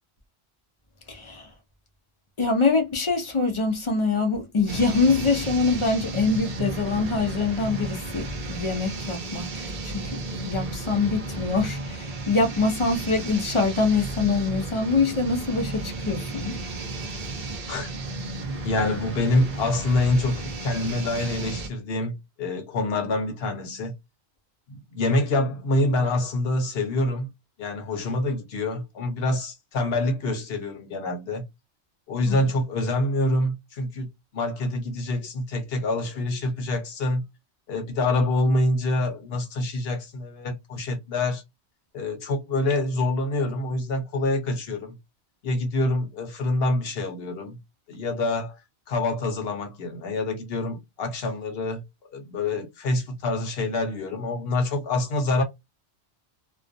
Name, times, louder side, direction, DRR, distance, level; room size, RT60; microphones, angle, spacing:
voice 1, 1.1-1.5 2.4-16.6 32.3-32.5, left 4 dB, 40° left, 0.4 m, -24 dB
sound 1, 4.7-21.7, right 2 dB, 55° right, 0.7 m, -33 dB
voice 2, 18.6-23.9 24.7-27.3 27.6-31.4 32.1-34.1 34.3-37.2 37.7-41.4 41.9-45.0 45.4-47.6 47.9-48.6 48.9-51.8 52.1-55.4, left 2 dB, 65° left, 0.9 m, -26 dB
2.3 x 2.2 x 2.5 m
omnidirectional pair, 1.1 m